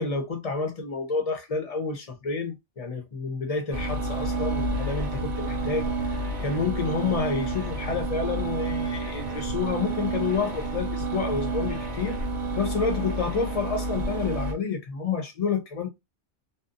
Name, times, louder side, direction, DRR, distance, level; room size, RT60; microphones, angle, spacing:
voice 1, 0.0-12.2 12.6-15.9, left 5 dB, 40° left, 0.7 m, -29 dB
sound 1, 3.7-14.5, right 2 dB, 40° right, 0.9 m, -30 dB
2.7 x 2.1 x 2.5 m
omnidirectional pair, 1.2 m